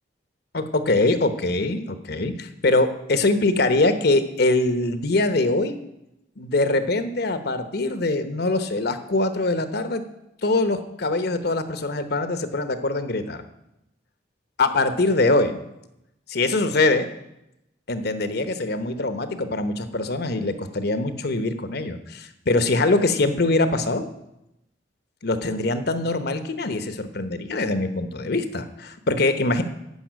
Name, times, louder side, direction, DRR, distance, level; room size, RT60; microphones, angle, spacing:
voice 1, 0.5-5.8 6.4-10.0 10.4-13.4 14.6-15.6 16.3-17.1 17.9-24.1 25.2-29.6, left 2 dB, 60° left, 10 dB, 1.0 m, -23 dB
14.0 x 5.6 x 9.3 m, 0.86 s
head